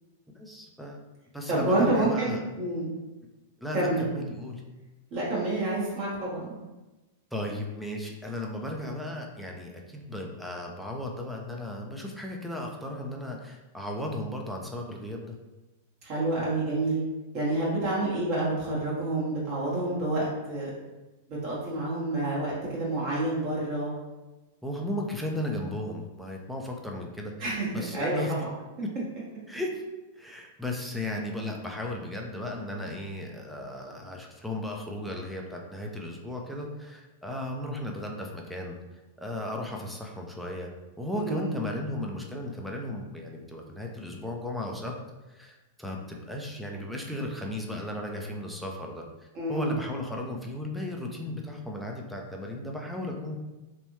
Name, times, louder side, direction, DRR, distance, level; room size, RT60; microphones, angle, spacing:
voice 1, 0.3-1.0 1.3-2.4 3.6-4.6 7.3-15.4 24.6-28.4 28.8-28.9 29.5-29.8 30.2-38.8 39.2-40.7 41.0-45.0 45.3-49.0 49.5-53.4, left 1 dB, ahead, 0 dB, 0.6 m, -35 dB
voice 2, 1.5-2.9 3.7-4.1 5.1-6.5 16.0-17.0 17.3-20.7 21.4-23.9 27.4-27.7 27.9-28.5 41.2-41.5 49.3-49.7, right 2 dB, 50° right, -6 dB, 1.4 m, -28 dB
3.2 x 2.5 x 3.1 m, 1.1 s
hypercardioid pair, 105°, 0 cm